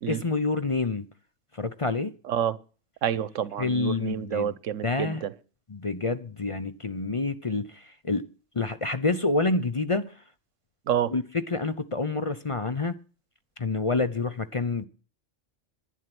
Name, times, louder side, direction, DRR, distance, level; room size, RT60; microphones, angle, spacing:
voice 1, 0.1-1.1 1.5-2.1 3.6-4.5 4.8-5.2 5.7-8.2 8.5-10.1 11.1-11.2 11.5-12.9 13.6-14.9, left 3 dB, 35° left, 0.6 m, -27 dB
voice 2, 2.2-2.6 3.0-5.3 10.9-11.1, right 9 dB, 90° right, 1.1 m, -28 dB
11.0 x 10.0 x 6.0 m
omnidirectional pair, 1.3 m